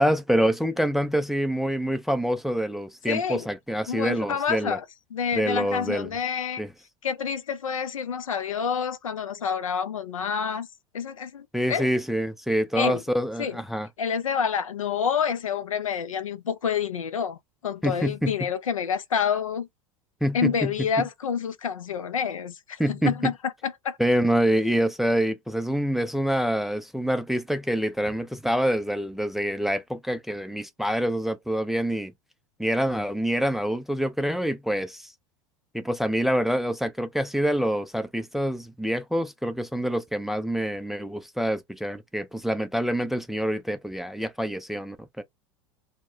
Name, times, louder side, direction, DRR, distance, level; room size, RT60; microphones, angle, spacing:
voice 1, 0.0-4.8 5.3-6.1 6.6-6.7 11.5-13.9 17.8-18.5 20.2-21.0 22.8-23.3 24.0-32.1 32.6-35.1 35.7-45.2, equal, ahead, 0.3 m, -26 dB
voice 2, 3.1-3.5 3.9-4.8 5.1-6.6 7.0-10.7 10.9-11.9 12.8-13.0 13.4-13.6 14.0-17.4 17.6-19.7 20.3-24.0, left 7 dB, 85° left, 0.4 m, -28 dB
2.1 x 2.1 x 3.6 m
figure-of-eight pair, 80°, 17 cm